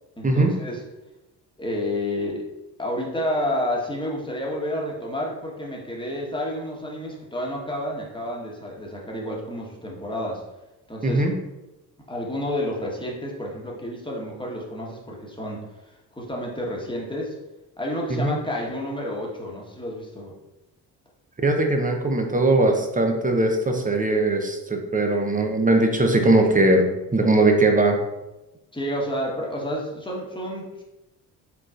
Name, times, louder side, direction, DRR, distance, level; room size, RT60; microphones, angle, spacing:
voice 1, 0.2-0.8 1.6-2.5 2.8-10.4 10.9-11.3 12.1-15.6 16.1-17.3 17.8-20.3 28.7-30.8, left 1 dB, 10° left, -2 dB, 1.3 m, -30 dB
voice 2, 11.0-11.3 18.1-18.4 21.4-28.0, right 2 dB, 15° right, 3 dB, 0.8 m, -20 dB
4.5 x 3.7 x 2.5 m, 0.98 s
hypercardioid pair, 45°, 49 cm